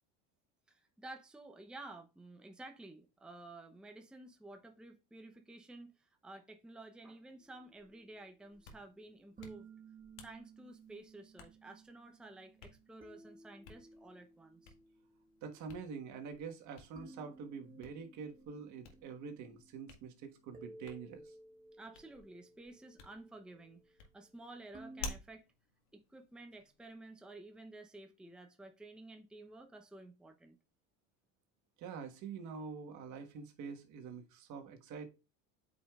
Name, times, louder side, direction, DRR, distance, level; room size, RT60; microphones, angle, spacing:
voice 1, 0.7-9.7 10.2-14.7 21.8-25.5 25.9-30.6, right 2 dB, ahead, 0.8 m, -53 dB
sound 1, 7.4-25.2, right 3 dB, 25° right, 1.5 m, -58 dB
Hands, 8.4-26.9, left 3 dB, 75° left, 1.9 m, -55 dB
voice 2, 15.4-21.3 31.8-35.1, right 5 dB, 55° right, 1.6 m, -46 dB
8.6 x 5.3 x 2.4 m
supercardioid pair, 95°, 36 cm